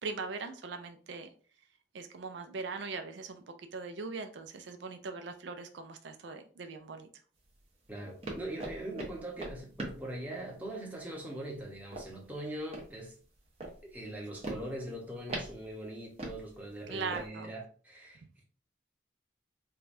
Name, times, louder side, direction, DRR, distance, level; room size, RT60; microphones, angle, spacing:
voice 1, 0.0-1.3 1.9-3.4 3.7-7.1 16.9-17.5, right 4 dB, 80° right, 0.4 m, -40 dB
sound 1, 7.4-17.3, right 2 dB, 35° right, 0.9 m, -44 dB
voice 2, 7.9-13.1 13.8-18.4, right 1 dB, 10° right, 0.9 m, -41 dB
4.9 x 2.3 x 2.6 m
head